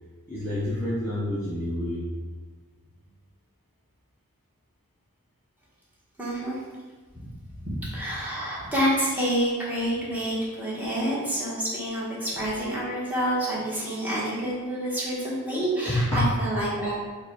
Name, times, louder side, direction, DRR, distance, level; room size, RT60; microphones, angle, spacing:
voice 1, 0.3-2.0 15.8-16.3, left 1 dB, 10° left, -10 dB, 0.7 m, -27 dB
voice 2, 6.2-6.6 7.2-7.3 7.6-17.0, right 1 dB, 10° right, -7 dB, 1.2 m, -28 dB
4.6 x 2.3 x 4.5 m, 1.4 s
head